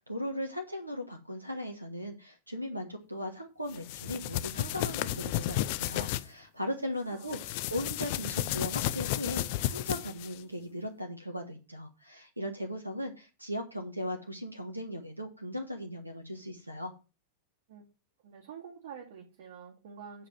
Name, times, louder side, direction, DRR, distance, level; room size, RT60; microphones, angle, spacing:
voice 1, 0.0-16.9, equal, 85° right, 6 dB, 1.3 m, -38 dB
sound 1, 3.7-6.2 7.2-10.4, left 14 dB, 50° left, 0.5 m, -33 dB
voice 2, 7.1-7.7 17.7-17.8 18.2-20.3, right 7 dB, 55° right, -2 dB, 2.3 m, -48 dB
8.7 x 5.0 x 7.4 m, 0.32 s
figure-of-eight pair, 90°, 0 cm